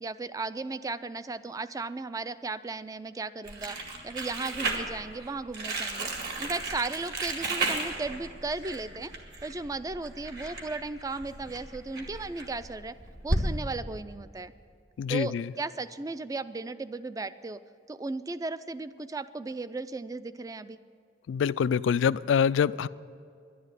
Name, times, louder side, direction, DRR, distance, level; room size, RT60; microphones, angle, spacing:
voice 1, 0.0-3.8 4.0-6.1 6.4-9.1 9.4-12.9 13.2-14.5 15.1-17.6 17.9-20.8, right 3 dB, 20° right, 14 dB, 0.3 m, -35 dB
Crumpling crinkling, 3.4-13.4, right 2 dB, 60° right, 2.0 m, -34 dB
voice 2, 15.0-15.4 21.3-22.9, left 7 dB, 80° left, 18 dB, 0.3 m, -25 dB
11.0 x 11.0 x 8.1 m, 2.3 s
head